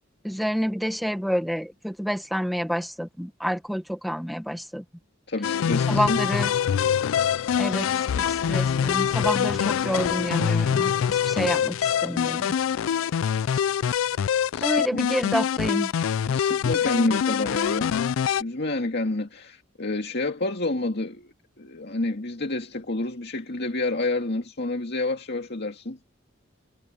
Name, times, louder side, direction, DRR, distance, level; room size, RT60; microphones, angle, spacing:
voice 1, 0.2-4.8 5.9-6.5 7.6-12.4 14.6-15.9, equal, ahead, 1.4 m, -28 dB
voice 2, 5.3-6.2 14.5-15.0 16.3-17.9 18.4-26.0, left 2 dB, 55° left, 2.2 m, -29 dB
sound 1, 5.4-18.4, left 8 dB, 80° left, 0.3 m, -24 dB
head